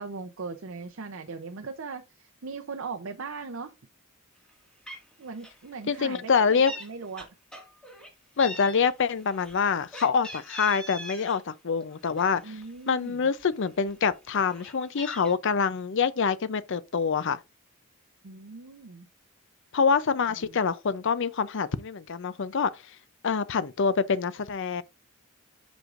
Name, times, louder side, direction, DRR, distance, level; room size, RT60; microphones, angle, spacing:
voice 1, 0.0-3.7 5.2-7.3 12.4-13.3 18.2-19.1 20.4-20.6, right 4 dB, 65° right, 0.6 m, -39 dB
Meow, 4.5-4.6 4.9-5.1 5.4-5.7 5.9-6.9 7.2-8.1 8.4-11.4 11.8-12.9 13.4-13.5 13.8-15.3, equal, 5° left, 1.9 m, -42 dB
voice 2, 5.9-6.7 8.4-12.5 12.9-17.4 19.7-22.7 23.2-24.8, left 5 dB, 60° left, 0.5 m, -26 dB
7.9 x 6.2 x 2.5 m
head